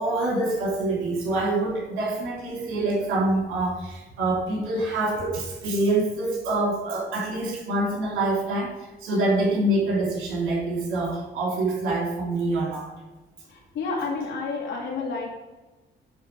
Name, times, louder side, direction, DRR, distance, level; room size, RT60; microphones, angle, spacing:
voice 1, 0.0-8.7 9.0-12.9, right 2 dB, 90° right, -2 dB, 3.2 m, -25 dB
voice 2, 13.5-15.3, left 4 dB, 70° left, -1 dB, 2.8 m, -30 dB
10.5 x 4.2 x 6.0 m, 1.1 s
cardioid pair, 90°, 20 cm